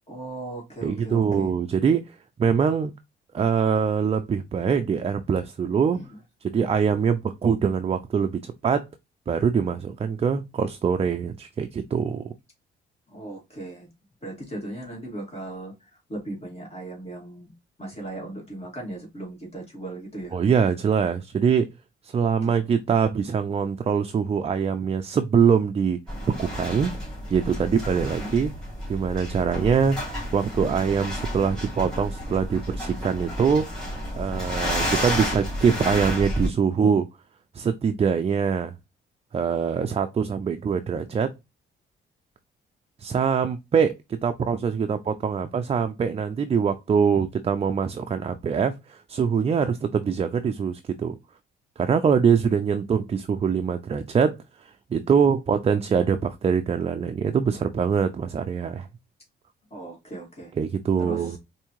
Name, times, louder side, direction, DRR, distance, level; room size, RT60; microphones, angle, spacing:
voice 1, 0.1-1.5 5.9-6.2 13.1-13.9 14.2-17.5 17.8-20.4 22.2-22.6 28.1-28.4 59.7-60.5 61.0-61.4, right 1 dB, 30° left, 2.3 m, -37 dB
voice 2, 0.8-2.9 3.3-6.0 6.4-8.9 9.3-12.3 20.3-21.7 22.0-26.0 26.4-26.9 27.3-28.5 28.9-30.0 30.3-33.7 34.2-37.1 37.5-38.7 39.3-41.3 43.0-51.2 51.8-58.9 60.6-61.4, right 6 dB, 30° right, 0.4 m, -23 dB
sound 1, 26.1-36.5, equal, 5° left, 2.7 m, -31 dB
4.6 x 2.7 x 2.9 m
cardioid pair, 90°, 20 cm